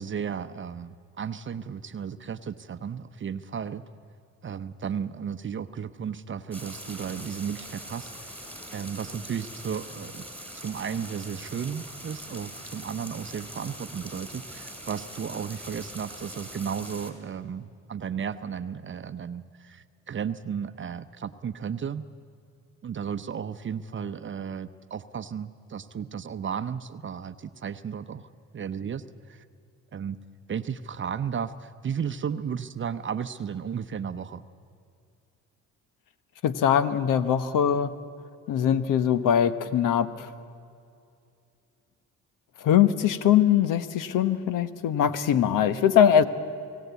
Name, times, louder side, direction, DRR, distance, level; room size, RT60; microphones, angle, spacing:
voice 1, 0.0-3.8 4.4-8.1 8.7-10.2 10.5-22.1 22.8-28.3 28.5-29.0 29.3-29.4 29.9-30.2 30.5-34.4 45.0-45.1, right 7 dB, 35° right, 11 dB, 0.8 m, -34 dB
sound 1, 6.5-17.1, right 1 dB, 5° left, 3.8 m, -42 dB
voice 2, 36.4-37.9 38.5-40.3 42.6-46.2, left 9 dB, 75° left, 13 dB, 1.1 m, -22 dB
25.5 x 17.0 x 8.2 m, 2.5 s
cardioid pair, 90°, 32 cm